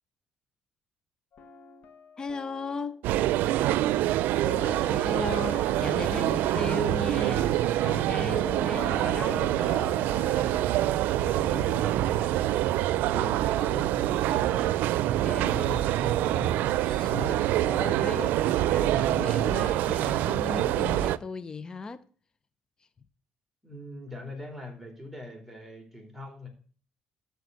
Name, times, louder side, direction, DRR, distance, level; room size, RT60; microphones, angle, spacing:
sound 1, 1.3-14.0 14.3-19.1, left 6 dB, 55° left, 1.5 m, -47 dB
voice 1, 2.2-3.0 4.9-9.9 15.1-15.8 16.7-22.1, left 4 dB, 25° left, 0.7 m, -37 dB
sound 2, 3.0-21.2, right 14 dB, 85° right, 0.5 m, -26 dB
voice 2, 4.4-5.1 5.8-6.1 8.8-9.0 11.2-14.8 15.3-16.6 17.0-17.5 23.6-26.5, left 2 dB, 5° right, 4.0 m, -41 dB
13.0 x 4.7 x 8.1 m
cardioid pair, 135°, 3 cm